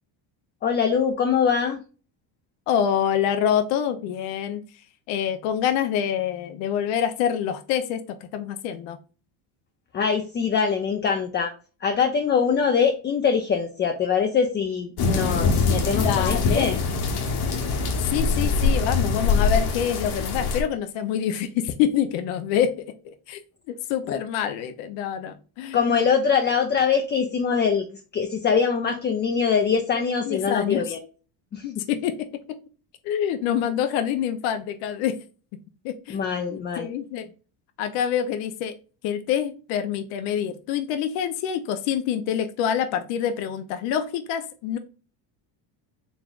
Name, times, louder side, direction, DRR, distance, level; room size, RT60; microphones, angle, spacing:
voice 1, 0.6-1.8 9.9-11.5 11.8-16.8 24.1-24.2 25.7-27.9 28.1-31.0 31.5-31.7 36.1-36.9, left 6 dB, 25° left, 5 dB, 0.4 m, -23 dB
voice 2, 2.7-4.6 5.1-9.0 16.0-16.7 18.1-22.9 23.3-23.4 23.7-26.0 30.2-30.9 31.6-32.6 33.0-35.1 35.8-36.2 36.5-37.3 37.8-38.7 39.0-44.8, left 9 dB, 80° left, 8 dB, 0.7 m, -26 dB
sound 1, 15.0-20.6, left 4 dB, 55° left, 1.1 m, -23 dB
4.0 x 3.4 x 2.4 m, 0.36 s
cardioid pair, 115°, 47 cm